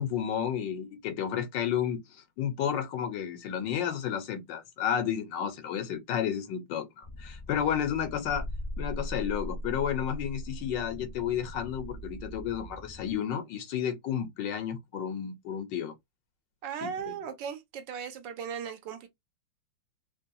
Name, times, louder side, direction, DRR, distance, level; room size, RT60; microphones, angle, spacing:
voice 1, 0.0-2.0 2.4-8.4 8.8-15.9 16.8-17.2, left 9 dB, 75° left, 1.4 m, -32 dB
sound 1, 7.0-13.2, equal, 35° left, 0.7 m, -40 dB
voice 2, 16.6-19.1, right 7 dB, 80° right, 1.3 m, -37 dB
3.5 x 2.3 x 2.6 m
omnidirectional pair, 2.0 m